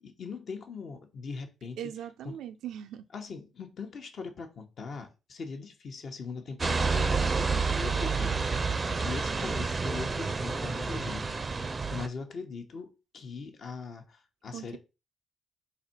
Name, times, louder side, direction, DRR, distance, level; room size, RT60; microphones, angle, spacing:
voice 1, 0.0-1.9 2.2-2.3 3.1-14.8, left 4 dB, 55° left, 0.9 m, -41 dB
voice 2, 1.8-3.0 14.5-14.8, right 10 dB, 80° right, 0.4 m, -40 dB
sound 1, 6.6-12.1, right 4 dB, 30° right, 0.5 m, -29 dB
4.1 x 2.7 x 4.3 m
cardioid pair, 90°, 0 cm